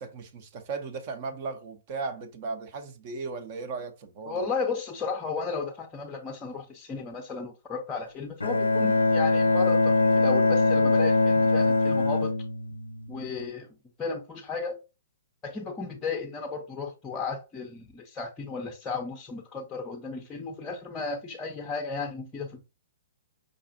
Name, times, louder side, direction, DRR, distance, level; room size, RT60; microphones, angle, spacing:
voice 1, 0.0-4.4, right 4 dB, 45° right, 0.6 m, -36 dB
voice 2, 4.3-12.4 13.1-13.7 14.0-14.8 15.4-22.6, left 4 dB, 20° left, 0.5 m, -34 dB
Bowed string instrument, 8.4-13.4, left 3 dB, 80° left, 0.4 m, -23 dB
5.1 x 2.4 x 2.6 m
figure-of-eight pair, 115°, 0 cm